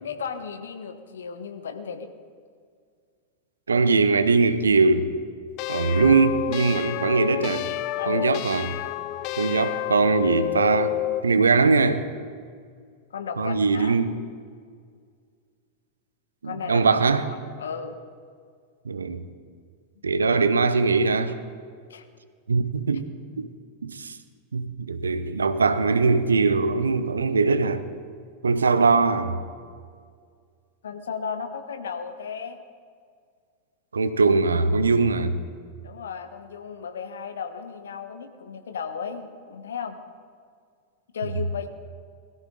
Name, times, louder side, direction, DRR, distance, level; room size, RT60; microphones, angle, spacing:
voice 1, 0.0-2.1 8.0-8.3 13.1-14.0 16.4-17.0 17.6-18.0 21.9-22.0 30.8-32.6 35.8-40.0 41.1-41.7, left 6 dB, 65° left, 8 dB, 1.2 m, -34 dB
voice 2, 3.7-5.1 5.7-7.7 8.1-8.8 9.4-10.9 11.2-12.0 13.4-14.1 16.4-17.2 18.9-19.3 20.0-21.3 22.5-23.1 23.4-23.5 23.8-24.2 24.5-27.8 28.4-29.4 33.9-35.4, right 4 dB, 75° right, 12 dB, 0.8 m, -21 dB
sound 1, 5.6-11.3, left 15 dB, 40° left, 0.4 m, -29 dB
21.0 x 14.0 x 3.8 m, 2.1 s
figure-of-eight pair, 90°, 0 cm